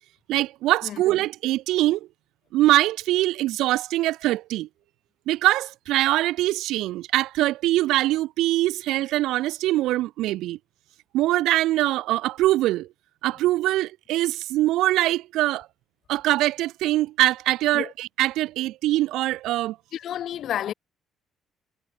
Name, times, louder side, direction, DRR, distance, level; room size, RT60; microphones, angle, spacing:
voice 1, 0.3-2.0 2.5-4.7 5.3-10.6 11.1-12.9 13.2-15.7 16.1-19.8, right 16 dB, 90° right, 1.0 m, -23 dB
voice 2, 19.9-20.7, left 11 dB, 50° left, 6.5 m, -30 dB
cardioid pair, 180°, 0 cm